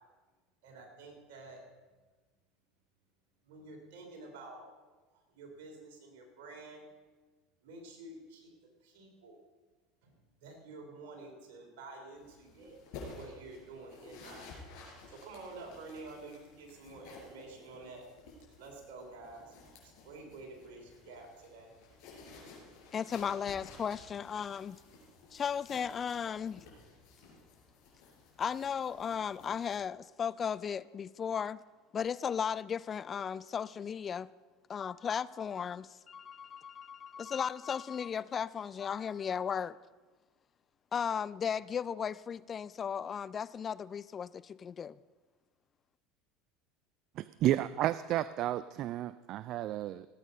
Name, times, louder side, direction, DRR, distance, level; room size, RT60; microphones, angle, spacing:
voice 1, 0.6-1.6 3.4-4.6 5.1-6.8 7.6-8.5 8.8-9.4 10.0-10.1 10.4-14.6 15.1-18.1 18.6-19.6 19.8-21.7, right 3 dB, 70° right, 3.6 m, -49 dB
sound 1, 12.2-29.8, left 3 dB, 65° left, 4.6 m, -54 dB
voice 2, 22.9-24.8 25.3-26.6 28.4-31.6 31.9-34.3 34.7-39.8 40.9-45.0, left 7 dB, 35° left, 0.3 m, -36 dB
voice 3, 47.2-50.1, right 13 dB, 55° right, 0.3 m, -32 dB
17.0 x 8.5 x 5.4 m
hypercardioid pair, 80°, 0 cm